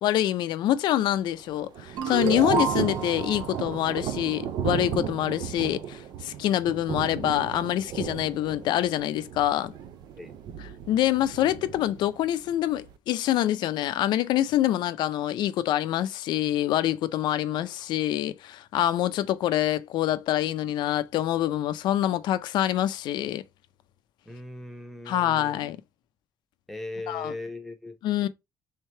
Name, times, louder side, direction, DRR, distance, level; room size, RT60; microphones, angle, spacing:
voice 1, 0.0-9.7 10.6-23.4 25.1-25.8 27.1-27.3 28.0-28.3, left 12 dB, 90° left, 0.5 m, -26 dB
Thunder / Rain, 1.0-13.0, right 9 dB, 70° right, 0.5 m, -35 dB
sound 1, 2.0-5.2, right 5 dB, 90° right, 1.0 m, -31 dB
voice 2, 24.3-25.6 26.7-28.0 28.2-28.3, left 2 dB, ahead, 0.8 m, -39 dB
3.6 x 3.3 x 4.3 m
cardioid pair, 165°, 7 cm